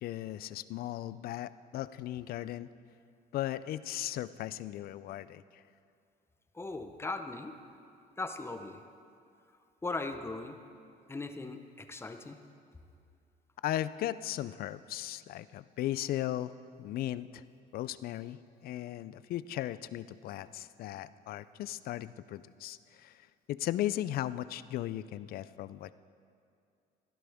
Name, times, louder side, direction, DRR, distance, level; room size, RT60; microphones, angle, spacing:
voice 1, 0.0-2.7 3.3-5.6 13.6-16.5 16.8-17.4 17.7-23.2 23.5-25.9, left 13 dB, 65° left, 16 dB, 0.4 m, -37 dB
voice 2, 6.5-7.6 8.2-8.8 9.8-10.6 11.1-12.4, left 3 dB, 15° left, 7 dB, 0.7 m, -39 dB
16.0 x 11.5 x 3.5 m, 2.4 s
cardioid pair, 110°, 17 cm